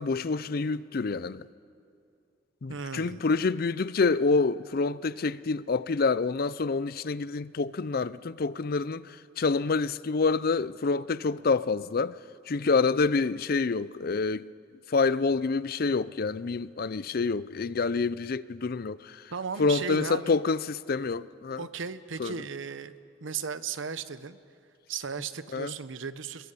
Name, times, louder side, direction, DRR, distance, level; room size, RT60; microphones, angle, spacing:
voice 1, 0.0-1.4 2.6-9.1 9.4-12.1 12.5-14.5 14.9-19.2 19.6-21.6 22.2-22.3 25.5-25.7, left 4 dB, 50° left, 0.5 m, -27 dB
voice 2, 2.7-3.2 19.3-20.4 21.6-22.9 23.2-24.4 24.9-26.5, right 6 dB, 80° right, 0.8 m, -36 dB
26.0 x 22.0 x 6.8 m
head